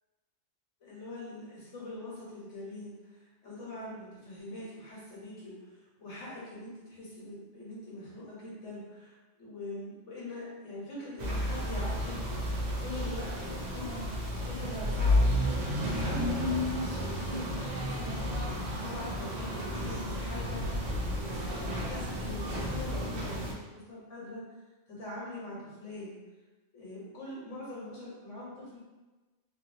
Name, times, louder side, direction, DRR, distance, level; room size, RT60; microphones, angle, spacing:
voice 1, 0.8-14.1 14.4-15.6 15.9-18.5 18.8-24.4 24.9-26.2 26.7-28.8, left 1 dB, 65° left, -7 dB, 1.5 m, -43 dB
sound 1, 11.2-23.5, left 1 dB, 60° right, 0.4 m, -32 dB
3.1 x 2.6 x 2.6 m, 1.2 s
omnidirectional pair, 1.4 m